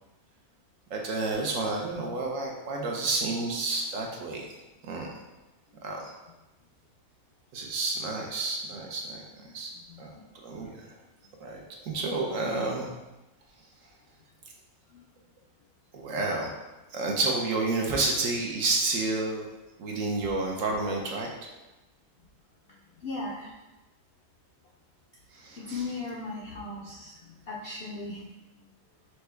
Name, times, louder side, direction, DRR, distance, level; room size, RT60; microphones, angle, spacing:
voice 1, 0.9-4.5 4.8-5.1 5.8-6.1 7.5-9.2 9.5-9.7 10.0-10.9 11.4-12.9 15.9-16.5 16.9-19.5 19.8-21.3 25.3-25.8, right 3 dB, 65° right, 0 dB, 1.0 m, -30 dB
voice 2, 9.9-10.2 14.9-15.0 23.0-23.5 25.6-28.2, left 3 dB, 65° left, -4 dB, 0.6 m, -37 dB
5.9 x 2.2 x 3.3 m, 1.0 s
omnidirectional pair, 1.6 m